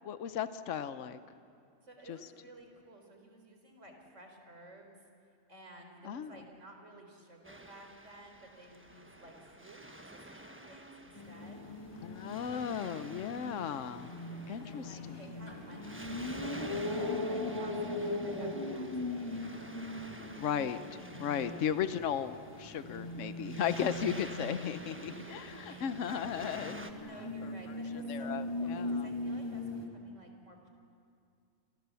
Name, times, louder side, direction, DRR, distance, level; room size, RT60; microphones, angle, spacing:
voice 1, 0.0-1.2 2.1-2.2 6.0-6.4 12.0-14.1 14.5-15.3 20.4-27.1 27.4-27.5 28.1-29.1, left 8 dB, 70° left, 11 dB, 1.2 m, -36 dB
voice 2, 1.8-4.9 5.5-11.7 14.5-19.5 24.9-25.9 27.0-30.7, right 1 dB, 60° right, 3 dB, 4.3 m, -54 dB
Waves surf, 7.4-26.9, right 1 dB, 10° right, 1.2 m, -50 dB
sound 1, 11.2-29.9, left 1 dB, 20° left, 2.1 m, -40 dB
28.5 x 26.5 x 7.1 m, 2.3 s
omnidirectional pair, 1.4 m